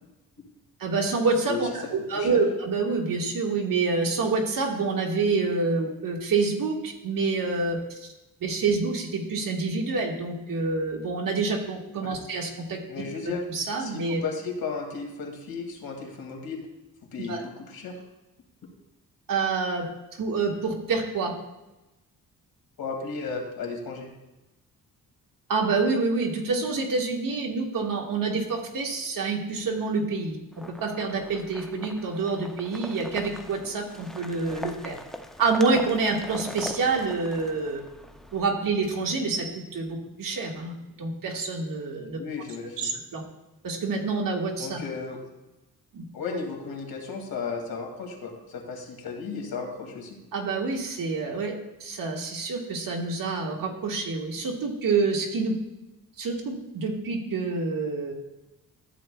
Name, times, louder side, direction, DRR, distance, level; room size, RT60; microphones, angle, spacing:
voice 1, 0.8-8.1 8.4-12.8 13.5-14.2 17.3-17.4 19.3-19.8 20.2-21.3 25.5-30.4 30.7-34.9 35.4-37.8 38.3-42.2 42.7-43.2 43.6-44.8 45.9-46.0 50.3-51.5 51.8-55.5 56.2-58.1, right 4 dB, 65° right, 0 dB, 1.7 m, -27 dB
voice 2, 12.9-13.4 13.8-16.6 17.1-17.9 22.8-24.1 42.1-42.9 44.6-45.2 46.1-50.2, left 5 dB, 75° left, 1 dB, 2.3 m, -34 dB
sound 1, 30.5-38.5, left 1 dB, ahead, 0.5 m, -41 dB
13.5 x 8.1 x 2.3 m, 0.99 s
cardioid pair, 120°, 36 cm